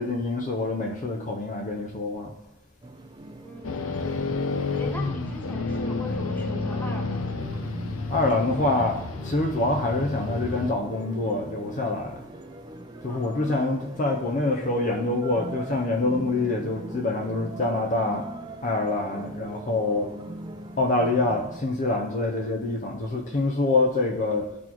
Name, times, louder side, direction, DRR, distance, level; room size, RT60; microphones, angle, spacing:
voice 1, 0.0-2.3 8.1-12.3 13.0-18.3 18.6-20.1 20.8-24.6, left 2 dB, 35° left, 0.5 m, -26 dB
sound 1, 2.8-21.6, right 1 dB, 20° right, 0.4 m, -41 dB
voice 2, 3.4-4.3 4.8-7.3 13.1-13.8, left 2 dB, 10° left, 0.8 m, -40 dB
sound 2, 3.6-10.7, left 3 dB, 85° left, 0.5 m, -30 dB
12.0 x 4.2 x 2.9 m
head